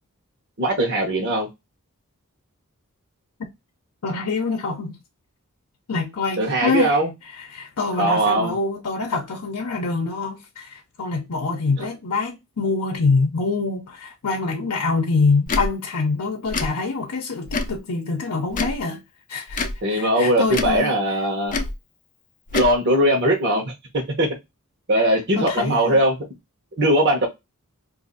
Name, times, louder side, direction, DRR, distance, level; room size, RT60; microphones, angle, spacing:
voice 1, 0.6-1.5 6.4-7.1 8.0-8.5 19.8-21.5 22.5-24.3 24.9-26.2 26.8-27.3, right 1 dB, 50° right, 1.0 m, -20 dB
voice 2, 4.0-5.0 5.9-7.0 7.3-19.0 19.3-19.6 19.9-20.9 25.0-25.1 25.3-26.0, left 4 dB, 85° left, 0.7 m, -25 dB
Tick / Tick-tock, 15.5-15.7 16.5-16.7 17.5-17.8 18.5-18.8 19.5-19.8 20.5-20.8 21.5-21.8 22.5-22.7, left 3 dB, 35° left, 0.5 m, -26 dB
2.6 x 2.5 x 3.9 m
head